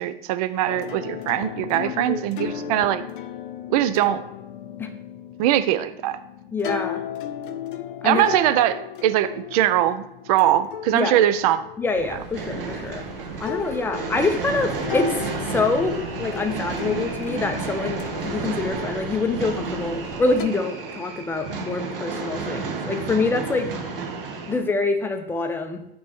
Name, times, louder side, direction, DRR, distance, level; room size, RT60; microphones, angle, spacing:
voice 1, 0.0-3.0 3.7-4.2 5.4-6.2 8.0-8.8 9.0-11.6, right 12 dB, 40° right, 12 dB, 0.5 m, -21 dB
sound 1, 0.7-12.9 13.5-20.5, left 10 dB, 60° left, 0.5 m, -36 dB
voice 2, 1.9-2.2 4.8-4.9 6.5-7.0 8.0-8.3 10.9-11.3 11.8-13.0 13.4-15.2 15.5-23.7 24.5-25.8, left 3 dB, 5° left, 6 dB, 0.6 m, -25 dB
sound 2, 11.9-20.5, right 2 dB, 25° right, 2.0 m, -42 dB
sound 3, 12.3-24.6, right 4 dB, 65° right, 1.8 m, -32 dB
6.0 x 3.1 x 5.7 m, 0.80 s
figure-of-eight pair, 90°, 30 cm